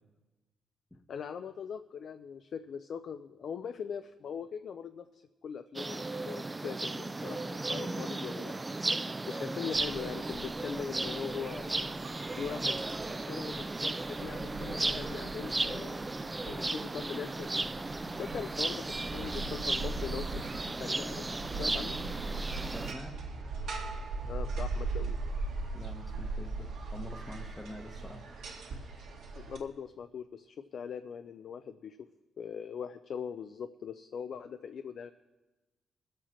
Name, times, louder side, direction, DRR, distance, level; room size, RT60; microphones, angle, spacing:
voice 1, 1.1-8.5 9.3-11.8 12.4-12.8 13.2-15.9 16.5-17.6 18.1-20.5 20.8-21.3 21.6-22.0 24.3-25.2 29.3-32.1 32.4-35.1, left 7 dB, 60° left, 9 dB, 0.4 m, -41 dB
sound 1, 5.8-22.9, right 2 dB, 15° right, 0.3 m, -35 dB
sound 2, 9.7-29.6, right 3 dB, 75° right, 2.0 m, -40 dB
voice 2, 22.6-23.2 25.7-28.2, left 1 dB, 10° left, 0 dB, 0.8 m, -46 dB
21.0 x 7.5 x 4.3 m, 1.1 s
cardioid pair, 125°, 0 cm